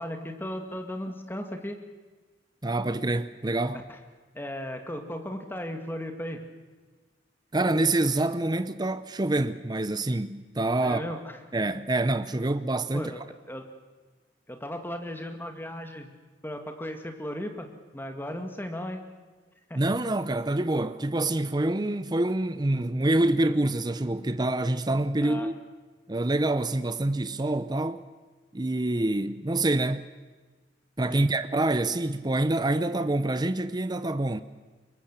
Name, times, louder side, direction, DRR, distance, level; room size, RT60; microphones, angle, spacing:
voice 1, 0.0-1.8 3.9-4.0 4.3-6.4 10.8-11.4 12.9-13.2 13.5-13.7 14.5-16.1 16.4-19.1 19.7-19.8 25.2-25.5 31.1-31.3, left 1 dB, 10° left, 2.1 m, -36 dB
voice 2, 2.6-3.8 7.5-11.0 11.5-13.1 19.8-25.5 26.1-28.0 28.5-30.1 31.0-34.4, right 2 dB, 25° right, 0.7 m, -26 dB
25.0 x 22.5 x 7.5 m
head